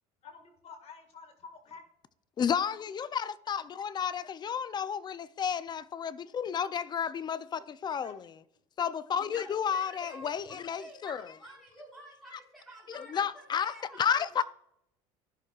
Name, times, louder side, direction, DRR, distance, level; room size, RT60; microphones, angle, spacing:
voice 1, 0.2-1.8 8.0-8.1 10.0-10.5, left 5 dB, 45° left, 1.7 m, -49 dB
voice 2, 2.4-8.2 8.8-11.2 12.9-14.4, left 7 dB, 30° left, 0.4 m, -32 dB
voice 3, 9.2-14.4, right 1 dB, ahead, 3.4 m, -50 dB
14.5 x 6.4 x 2.4 m
supercardioid pair, 105°, 14 cm